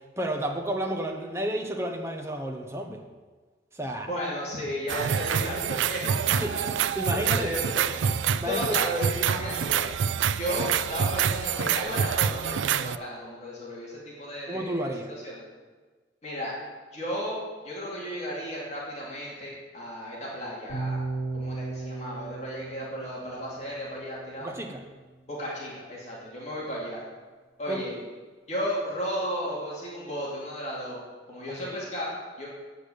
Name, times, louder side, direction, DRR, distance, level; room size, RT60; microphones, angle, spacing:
voice 1, 0.2-3.0 3.7-4.1 6.3-6.5 6.9-7.6 8.4-8.8 14.5-15.1 24.4-24.8 27.7-28.0 31.5-31.8, right 1 dB, 15° right, 2 dB, 1.0 m, -31 dB
voice 2, 4.1-6.7 7.1-8.1 8.4-9.9 10.4-14.9 15.2-15.4 16.2-16.5 16.9-21.0 21.3-24.5 25.3-27.0 27.6-27.9 28.5-31.0 31.3-32.5, equal, 40° left, -5 dB, 2.5 m, -34 dB
sound 1, 4.9-13.0, right 8 dB, 85° right, 0.4 m, -27 dB
sound 2, 20.7-24.8, right 3 dB, 55° left, 3.8 m, -36 dB
8.3 x 6.6 x 8.4 m, 1.4 s
head